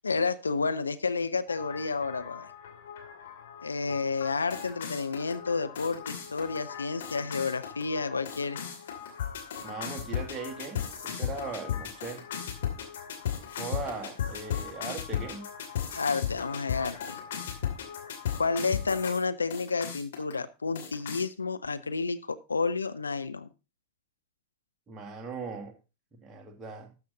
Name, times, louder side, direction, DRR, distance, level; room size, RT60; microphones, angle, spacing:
voice 1, 0.0-2.5 3.6-8.6 15.9-17.2 18.4-23.5, left 4 dB, 75° left, 0.5 m, -30 dB
sound 1, 1.5-19.2 19.5-20.3 20.8-21.2, left 9 dB, 60° left, 2.5 m, -37 dB
voice 2, 9.6-12.2 13.6-15.4 24.9-25.7 26.2-26.9, right 4 dB, 20° right, 2.1 m, -39 dB
12.5 x 6.7 x 3.9 m
figure-of-eight pair, 90°, 0 cm